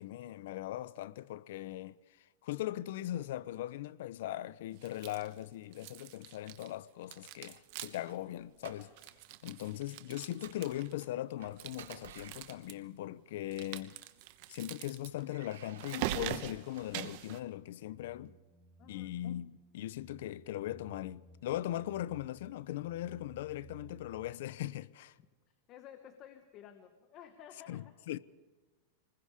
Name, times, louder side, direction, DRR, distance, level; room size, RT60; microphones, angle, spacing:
voice 1, 0.0-1.9 2.4-8.9 9.4-13.9 14.5-18.4 18.9-25.1 27.7-28.2, left 14 dB, 65° left, 0.5 m, -39 dB
sound 1, 4.8-5.4 5.7-6.8 7.0-8.2 8.4-8.5 8.8-11.0 11.5-12.7 13.5-17.4, right 14 dB, 50° right, 1.0 m, -43 dB
sound 2, 7.3-9.2 9.5-9.7 10.1-12.9 13.8-14.6 15.2-17.5, right 9 dB, 90° right, 2.6 m, -51 dB
sound 3, 17.4-24.3, right 1 dB, ahead, 1.7 m, -58 dB
voice 2, 18.8-19.1 25.7-27.9, left 9 dB, 35° left, 1.2 m, -53 dB
26.5 x 20.5 x 4.9 m
supercardioid pair, 155°, 0 cm